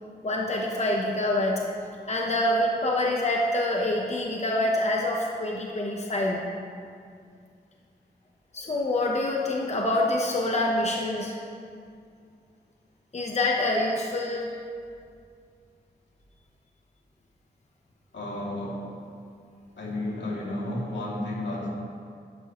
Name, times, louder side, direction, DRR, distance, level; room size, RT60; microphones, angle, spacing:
voice 1, 0.2-1.6 2.1-6.4 8.5-11.4 13.1-14.5, left 1 dB, 40° left, -1 dB, 1.0 m, -26 dB
voice 2, 18.1-18.9 19.8-21.7, left 1 dB, 90° left, -5 dB, 2.6 m, -32 dB
11.5 x 11.5 x 3.1 m, 2.3 s
wide cardioid pair, 130°, 18 cm